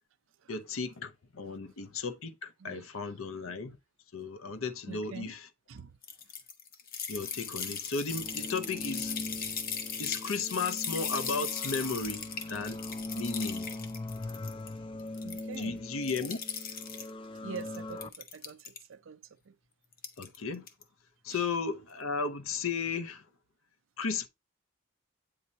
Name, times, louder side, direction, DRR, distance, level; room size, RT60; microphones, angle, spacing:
voice 1, 0.5-3.8 4.1-5.5 7.1-9.2 10.0-12.8 13.1-13.7 15.6-16.4 20.2-20.7 21.2-23.2 24.0-24.3, left 4 dB, 75° left, 0.8 m, -35 dB
voice 2, 4.9-5.3 5.7-5.9 15.2-15.8 17.4-19.5 21.3-21.4, right 6 dB, 60° right, 0.5 m, -45 dB
sound 1, 6.0-14.7 15.0-15.7 16.0-17.1 17.6-18.8 19.9-20.4 20.7-20.8, left 7 dB, 45° left, 0.9 m, -38 dB
sound 2, 8.1-18.1, left 2 dB, 25° left, 0.4 m, -41 dB
8.6 x 2.9 x 4.0 m
head